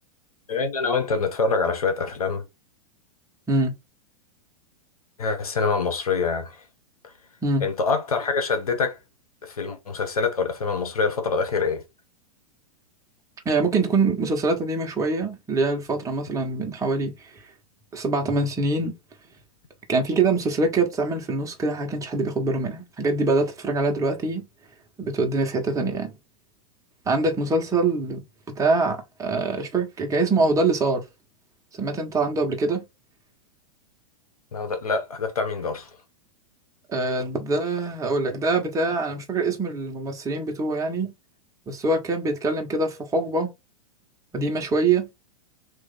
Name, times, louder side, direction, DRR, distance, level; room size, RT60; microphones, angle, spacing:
voice 1, 0.5-2.4 5.2-6.6 7.6-9.0 9.4-11.8 34.5-35.9, left 4 dB, 80° left, 1.3 m, -25 dB
voice 2, 13.4-17.1 17.9-18.9 19.9-24.5 25.0-26.1 27.0-31.0 31.8-32.8 36.9-41.1 41.7-43.5 44.3-45.1, right 3 dB, 15° right, 1.4 m, -24 dB
3.3 x 2.9 x 3.9 m
hypercardioid pair, 110°, 18 cm